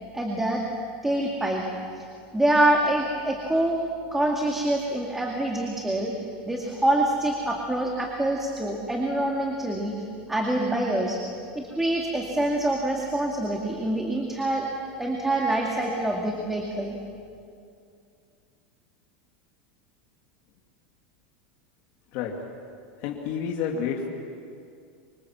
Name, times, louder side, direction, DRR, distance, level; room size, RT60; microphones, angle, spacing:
voice 1, 0.1-0.6 1.0-1.6 2.0-2.1 2.3-3.8 4.1-6.1 6.5-9.9 10.3-11.2 11.5-14.7 15.0-17.0, right 1 dB, 5° right, 0 dB, 2.3 m, -25 dB
voice 2, 23.0-24.1, left 7 dB, 50° left, -1 dB, 2.5 m, -29 dB
27.0 x 25.5 x 7.5 m, 2.4 s
supercardioid pair, 155°, 5 cm